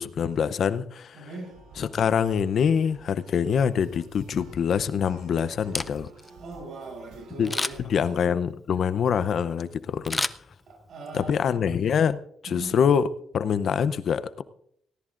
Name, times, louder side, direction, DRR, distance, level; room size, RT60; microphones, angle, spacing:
voice 1, 0.0-1.3 1.8-6.1 7.4-7.5 7.8-10.2 11.1-13.1 13.3-14.4, left 7 dB, 60° left, 14 dB, 0.7 m, -25 dB
voice 2, 1.1-1.5 6.4-7.8 10.7-11.4 12.5-12.7, right 2 dB, 60° right, 2 dB, 7.2 m, -39 dB
sound 1, 1.4-8.2, right 4 dB, 85° right, 3.8 m, -51 dB
Camera, 5.6-6.3 7.4-8.0 10.0-11.0 11.4-11.5, left 2 dB, 20° left, 0.5 m, -31 dB
18.5 x 17.5 x 2.5 m, 0.69 s
cardioid pair, 90°, 0 cm